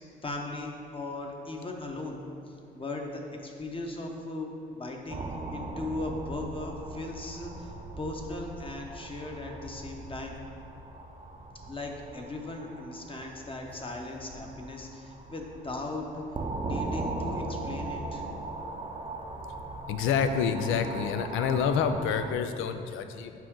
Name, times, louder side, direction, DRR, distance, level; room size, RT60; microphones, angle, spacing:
voice 1, 0.2-2.2 2.7-5.2 5.5-7.7 8.0-10.4 11.7-16.2 16.6-18.2, left 2 dB, 25° left, 1 dB, 1.0 m, -38 dB
sound 1, 5.1-22.3, right 2 dB, 25° right, 0.6 m, -39 dB
voice 2, 19.9-23.3, left 7 dB, 85° left, 8 dB, 0.5 m, -28 dB
7.4 x 5.0 x 3.7 m, 2.6 s
cardioid pair, 90°, 20 cm